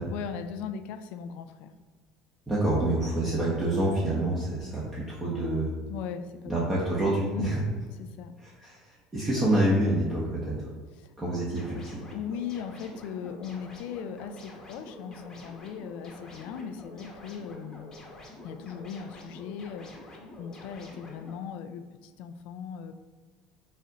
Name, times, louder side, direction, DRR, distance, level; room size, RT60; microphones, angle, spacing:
voice 1, 0.1-1.7 5.9-6.5 7.3-7.5 8.2-8.4 11.0-11.1 12.1-18.0 18.4-22.9, left 7 dB, 65° left, 9 dB, 0.3 m, -38 dB
voice 2, 2.5-5.7 6.5-7.6 8.4-10.6 11.2-12.0, right 1 dB, 15° right, -7 dB, 0.9 m, -27 dB
sound 1, 11.2-21.3, left 1 dB, 25° left, 0.9 m, -47 dB
4.2 x 2.4 x 3.9 m, 1.5 s
supercardioid pair, 110°, 2 cm